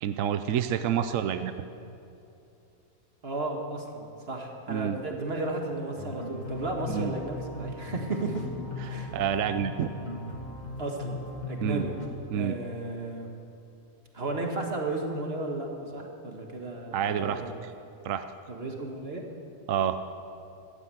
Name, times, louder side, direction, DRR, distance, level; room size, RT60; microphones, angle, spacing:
voice 1, 0.0-1.7 4.7-5.0 6.9-7.1 8.8-9.9 11.6-11.8 12.3-12.6 16.9-17.4 18.0-18.2 19.7-20.0, right 9 dB, 65° right, 10 dB, 0.9 m, -28 dB
voice 2, 3.2-8.4 8.9-9.1 10.8-12.0 12.3-13.3 14.1-17.5 18.5-19.2, right 2 dB, 40° right, 2 dB, 1.8 m, -34 dB
sound 1, 6.0-12.1, left 3 dB, 30° left, 1.7 m, -38 dB
15.5 x 12.0 x 7.8 m, 2.8 s
omnidirectional pair, 1.7 m